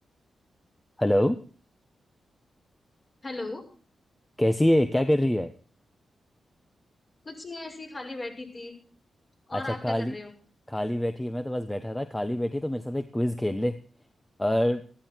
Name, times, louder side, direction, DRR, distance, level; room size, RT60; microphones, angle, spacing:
voice 1, 1.0-1.4 4.4-5.5 9.5-10.1 10.7-13.8 14.4-14.8, left 1 dB, 10° left, 9 dB, 1.2 m, -25 dB
voice 2, 3.2-3.6 7.2-8.8 9.5-10.3, left 2 dB, 35° left, 2 dB, 5.9 m, -37 dB
14.5 x 14.0 x 4.6 m, 0.40 s
cardioid pair, 70°, 0 cm